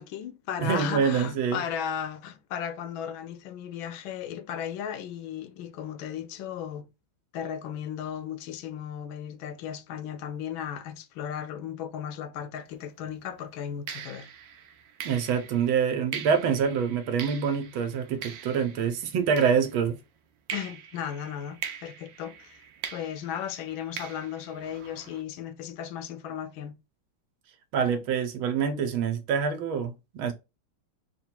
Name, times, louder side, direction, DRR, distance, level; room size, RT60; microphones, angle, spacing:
voice 1, 0.0-6.9 7.3-14.3 20.5-22.6 22.9-26.7, left 9 dB, 80° left, 1.3 m, -35 dB
voice 2, 0.6-1.6 15.0-20.0 27.7-30.3, right 7 dB, 90° right, 1.5 m, -26 dB
sound 1, 12.7-12.9 13.9-20.0 20.5-25.2, right 8 dB, 70° right, 1.2 m, -42 dB
3.8 x 2.2 x 4.4 m
omnidirectional pair, 2.2 m